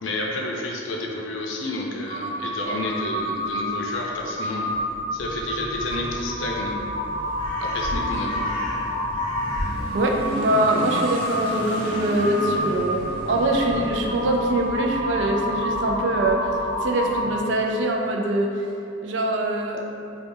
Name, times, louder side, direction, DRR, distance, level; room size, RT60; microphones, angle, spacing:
voice 1, 0.0-4.7 5.1-6.7 7.6-8.4, left 2 dB, 80° left, -1 dB, 0.5 m, -30 dB
Crow, 2.1-17.6, left 1 dB, 25° left, 0.5 m, -29 dB
Motorcycle / Accelerating revving vroom, 5.7-18.0, equal, 45° right, 0.8 m, -36 dB
voice 2, 9.9-16.4 16.8-18.5 19.0-19.9, right 1 dB, 65° right, 1 dB, 0.4 m, -23 dB
4.6 x 2.3 x 2.6 m, 2.7 s
head